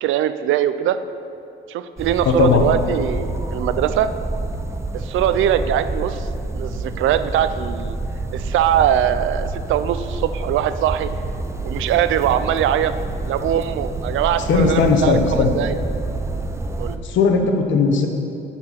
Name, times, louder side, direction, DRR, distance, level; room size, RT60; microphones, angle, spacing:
voice 1, 0.0-1.0 1.7-4.1 4.9-6.3 6.5-8.0 8.3-11.1 11.6-12.9 13.2-15.7 16.8-17.0, right 10 dB, 80° right, 12 dB, 0.5 m, -21 dB
sound 1, 2.0-17.0, right 2 dB, 15° right, 0.6 m, -28 dB
voice 2, 2.2-2.6 14.5-15.5 17.0-18.1, left 5 dB, 70° left, 4 dB, 1.1 m, -17 dB
10.5 x 4.4 x 5.8 m, 2.8 s
cardioid pair, 90°, 20 cm